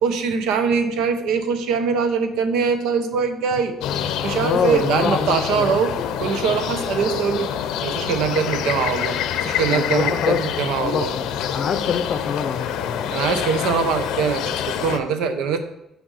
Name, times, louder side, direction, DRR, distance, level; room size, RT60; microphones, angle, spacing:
voice 1, 0.0-3.8 4.2-5.9 6.2-7.5 7.8-11.1 13.1-15.6, right 6 dB, 90° right, 8 dB, 0.8 m, -22 dB
sound 1, 3.8-15.0, left 9 dB, 90° left, 0.6 m, -26 dB
voice 2, 4.4-6.3 9.7-10.4 10.8-13.1, left 6 dB, 40° left, 10 dB, 0.5 m, -25 dB
6.4 x 5.2 x 4.9 m, 0.86 s
cardioid pair, 165°, 0 cm